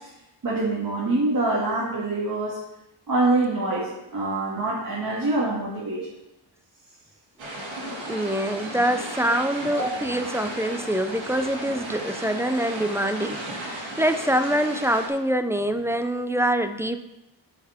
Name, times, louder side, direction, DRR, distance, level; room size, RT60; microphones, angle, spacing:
voice 1, 0.4-2.6 3.1-6.1 9.3-9.4 9.7-9.9, right 2 dB, 45° right, -6 dB, 2.0 m, -25 dB
sound 1, 7.4-15.1, right 1 dB, 75° right, 2.9 m, -35 dB
voice 2, 8.1-17.0, right 1 dB, 5° right, 8 dB, 0.4 m, -25 dB
8.2 x 5.8 x 5.7 m, 0.90 s
wide cardioid pair, 140°, 46 cm